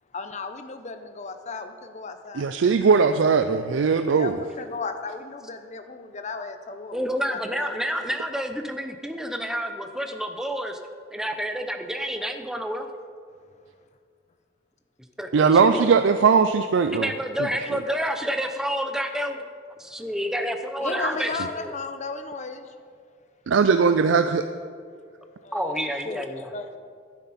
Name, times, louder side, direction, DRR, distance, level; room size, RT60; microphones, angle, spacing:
voice 1, 0.1-2.5 4.1-7.7 20.8-22.7 25.4-25.7 26.0-26.8, left 4 dB, 40° left, 8 dB, 0.7 m, -35 dB
voice 2, 2.3-4.4 15.3-17.1 17.7-17.8 23.5-24.5, right 5 dB, 75° right, 9 dB, 0.4 m, -19 dB
voice 3, 6.9-10.8 11.1-12.9 15.2-15.5 15.7-15.9 16.9-19.4 19.8-21.3 21.6-21.7 25.5-26.5, equal, 5° right, 6 dB, 0.6 m, -29 dB
11.5 x 9.7 x 4.2 m, 2.1 s
head